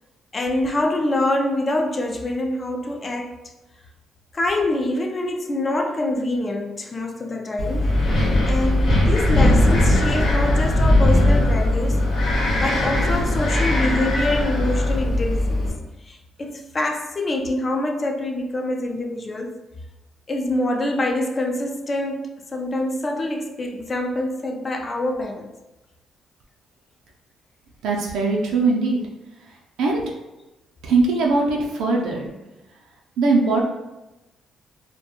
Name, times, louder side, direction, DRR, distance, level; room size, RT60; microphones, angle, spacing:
voice 1, 0.3-3.3 4.3-8.0 8.5-12.0 12.6-15.7 16.1-19.6 20.3-25.5, left 1 dB, 35° left, 0.3 m, -25 dB
Wind, 7.6-15.7, left 1 dB, 65° left, 0.9 m, -19 dB
voice 2, 27.8-29.0 29.8-30.1 30.8-32.3 33.2-33.6, right 3 dB, 85° right, 0.3 m, -20 dB
2.2 x 2.1 x 2.9 m
cardioid pair, 90°, 0 cm